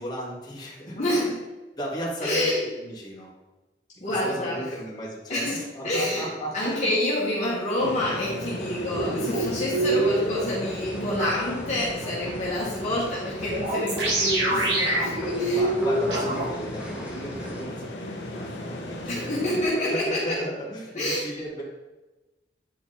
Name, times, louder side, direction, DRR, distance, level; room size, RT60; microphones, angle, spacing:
voice 1, 0.0-1.3 1.8-2.5 2.8-3.3 4.1-6.9 14.0-14.5 15.5-21.6, equal, 25° left, -6 dB, 2.3 m, -35 dB
voice 2, 1.0-1.4 2.2-2.6 4.0-4.6 5.3-6.2 6.5-15.6 19.1-20.4 20.9-21.2, left 1 dB, 40° left, -7 dB, 1.9 m, -27 dB
sound 1, 7.8-19.6, left 1 dB, 75° left, 1.3 m, -37 dB
sound 2, 8.9-10.4 11.2-11.3 13.5-16.5, right 2 dB, 70° right, 2.2 m, -25 dB
sound 3, 10.6-17.6, equal, 5° right, 1.4 m, -41 dB
9.4 x 4.6 x 4.3 m, 1.1 s
head